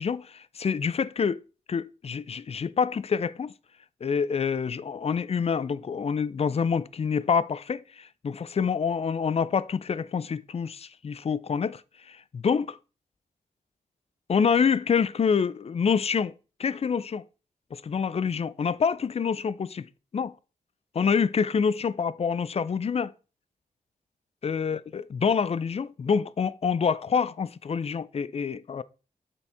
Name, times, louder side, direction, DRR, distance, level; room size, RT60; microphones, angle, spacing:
voice 1, 0.0-1.4 1.7-3.5 4.0-11.8 12.1-12.8 14.3-16.3 16.6-17.2 17.7-19.8 20.1-20.3 20.9-23.1 24.4-28.8, left 6 dB, 45° left, 0.4 m, -27 dB
8.3 x 4.0 x 3.4 m
cardioid pair, 75°, 15 cm